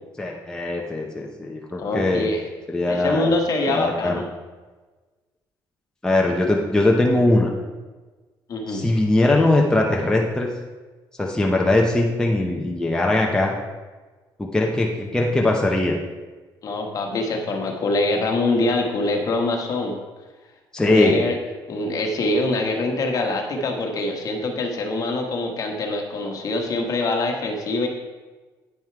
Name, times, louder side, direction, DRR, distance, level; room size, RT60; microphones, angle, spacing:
voice 1, 0.2-2.3 2.7-3.3 3.7-4.2 6.0-7.5 8.7-10.5 11.2-13.5 14.4-16.0 20.7-21.2, left 2 dB, 10° left, -1 dB, 0.8 m, -20 dB
voice 2, 1.8-2.4 2.9-4.3 8.5-8.8 16.6-20.0 20.8-21.4 21.7-27.9, left 2 dB, 45° left, 2 dB, 1.4 m, -24 dB
9.2 x 5.5 x 4.6 m, 1.3 s
cardioid pair, 125°, 8 cm